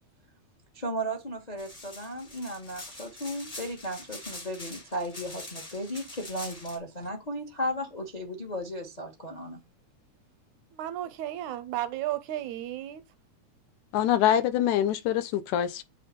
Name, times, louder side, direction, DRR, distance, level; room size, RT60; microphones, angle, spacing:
voice 1, 0.7-9.6, equal, 40° left, 0.5 m, -35 dB
sound 1, 1.6-6.8, left 2 dB, 20° left, 1.0 m, -44 dB
voice 2, 10.7-13.0, right 13 dB, 80° right, 2.0 m, -33 dB
voice 3, 13.9-15.8, left 11 dB, 80° left, 2.1 m, -24 dB
8.4 x 3.4 x 5.2 m
omnidirectional pair, 3.5 m